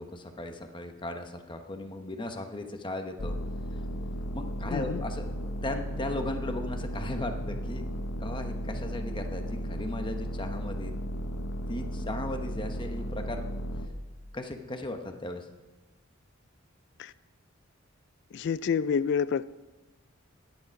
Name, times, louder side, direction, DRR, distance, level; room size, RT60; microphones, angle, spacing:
voice 1, 0.0-3.4 4.3-7.9 8.2-10.9 11.7-13.4 14.3-15.5, left 1 dB, 25° left, 5 dB, 1.0 m, -37 dB
sound 1, 3.2-13.9, equal, 85° left, 1.1 m, -35 dB
voice 2, 4.7-5.0 17.0-17.1 18.3-19.4, left 6 dB, 55° left, 17 dB, 0.3 m, -28 dB
13.0 x 10.0 x 5.2 m, 1.2 s
head